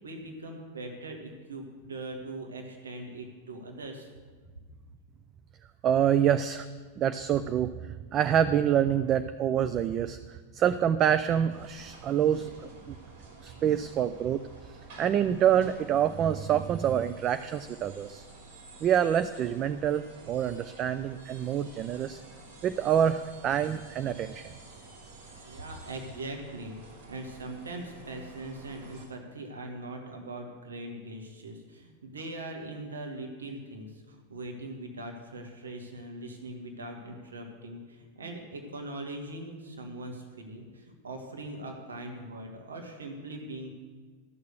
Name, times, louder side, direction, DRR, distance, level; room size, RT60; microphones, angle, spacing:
voice 1, 0.0-4.1 25.4-26.8 27.1-43.8, right 2 dB, 70° right, 2 dB, 1.6 m, -41 dB
voice 2, 5.8-6.7 7.0-7.7 8.1-13.0 13.4-14.4 15.0-18.2 18.8-22.2 22.6-24.5, right 9 dB, 30° right, 11 dB, 0.4 m, -26 dB
sound 1, 11.5-29.1, right 2 dB, 55° right, 3.4 m, -51 dB
13.5 x 6.6 x 6.6 m, 1.5 s
figure-of-eight pair, 90°, 0 cm